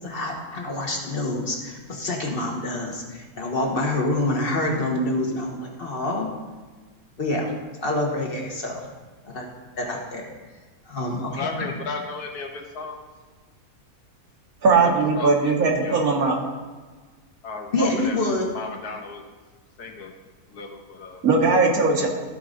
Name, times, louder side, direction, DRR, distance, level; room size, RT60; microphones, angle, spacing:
voice 1, 0.0-6.3 7.2-7.5 7.8-8.8 9.2-9.4 9.8-10.3 10.9-11.7 17.7-18.5, left 1 dB, 40° left, 0 dB, 1.4 m, -26 dB
voice 2, 11.2-13.0 14.7-14.9 15.2-15.5 15.8-16.0 17.4-18.2 18.5-19.2 19.8-20.1 20.5-21.2, left 4 dB, 85° left, 1 dB, 1.6 m, -34 dB
voice 3, 14.6-16.4 21.2-22.1, right 4 dB, 70° right, 1 dB, 1.6 m, -19 dB
13.5 x 4.7 x 3.8 m, 1.4 s
omnidirectional pair, 1.6 m